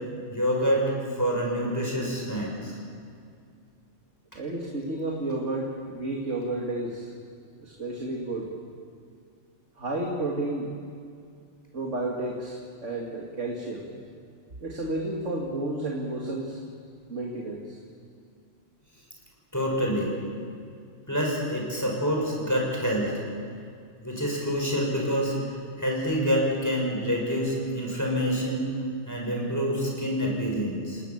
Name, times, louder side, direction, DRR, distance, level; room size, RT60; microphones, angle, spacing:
voice 1, 0.3-2.8 19.5-20.1 21.1-23.1 24.0-28.7 29.1-31.0, equal, 15° left, -2 dB, 6.4 m, -27 dB
voice 2, 4.3-7.1 7.6-8.5 9.8-10.7 11.7-13.9 14.6-16.6 17.1-17.8, right 2 dB, 80° right, -1 dB, 2.7 m, -31 dB
29.5 x 18.5 x 7.4 m, 2.3 s
omnidirectional pair, 1.2 m